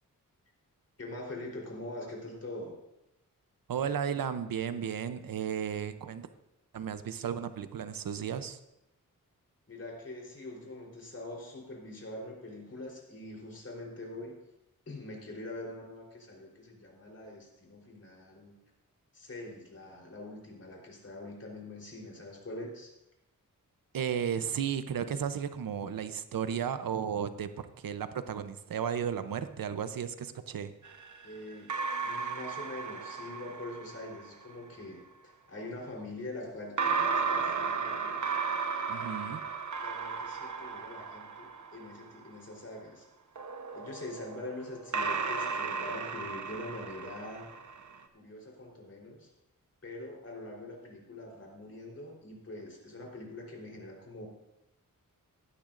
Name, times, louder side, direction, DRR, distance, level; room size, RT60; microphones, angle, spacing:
voice 1, 1.0-2.7 9.7-14.3 14.9-18.5 19.1-22.9 31.2-31.7 32.0-36.7 37.1-38.2 38.9-39.2 39.8-43.0 43.7-47.5 48.1-49.3 49.8-54.3, left 2 dB, 45° left, -2 dB, 3.7 m, -44 dB
voice 2, 3.7-6.3 6.7-8.6 23.9-30.7 38.9-39.4, right 8 dB, 80° right, 11 dB, 0.7 m, -34 dB
sound 1, 30.8-34.3 36.8-42.2 43.4-48.0, right 5 dB, 60° right, 1.0 m, -34 dB
16.5 x 12.0 x 2.5 m, 0.88 s
wide cardioid pair, 110°, 34 cm